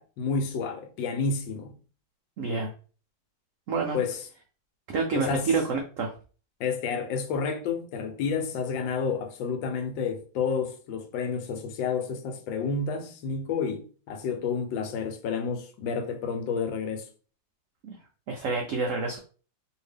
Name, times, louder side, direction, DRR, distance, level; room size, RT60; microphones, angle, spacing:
voice 1, 0.0-1.7 3.9-4.2 5.1-5.5 6.6-17.1, left 5 dB, 85° left, 1.3 m, -30 dB
voice 2, 2.4-2.7 3.7-4.0 4.9-6.1 17.8-18.0 18.3-19.2, right 4 dB, 85° right, 0.7 m, -28 dB
2.8 x 2.8 x 3.3 m
omnidirectional pair, 2.0 m